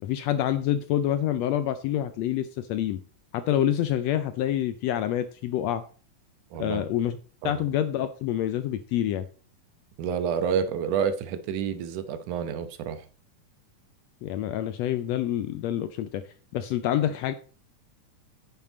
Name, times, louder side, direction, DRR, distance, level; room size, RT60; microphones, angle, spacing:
voice 1, 0.0-3.0 3.3-5.8 6.6-7.2 7.4-9.2 14.2-16.2 16.5-17.3, left 11 dB, 80° left, 1.6 m, -27 dB
voice 2, 6.5-6.8 7.4-7.6 10.0-13.1, right 7 dB, 80° right, 2.4 m, -29 dB
9.9 x 7.4 x 4.0 m
omnidirectional pair, 3.5 m